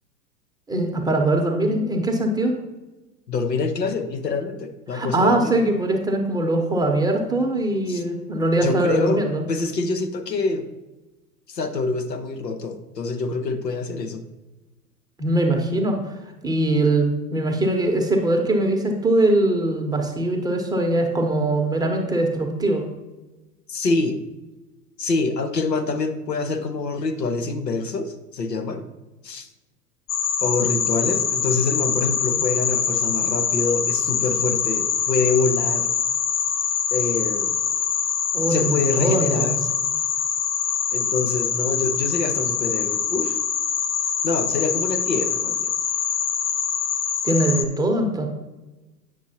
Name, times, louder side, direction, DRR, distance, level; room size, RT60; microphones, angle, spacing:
voice 1, 0.7-2.6 4.9-9.4 15.2-16.1 16.4-22.8 38.3-39.5 47.2-48.3, right 2 dB, 10° right, 1 dB, 0.8 m, -22 dB
voice 2, 3.3-5.5 7.9-8.0 8.6-9.2 9.5-10.7 11.5-14.2 23.7-24.2 25.0-28.8 29.2-29.5 30.4-35.9 36.9-37.6 38.5-39.6 40.9-43.4 44.2-45.7, left 3 dB, 85° left, 7 dB, 0.9 m, -25 dB
sound 1, 30.1-47.6, left 7 dB, 20° left, 0.5 m, -24 dB
8.9 x 6.2 x 2.8 m, 1.1 s
figure-of-eight pair, 95°, 48 cm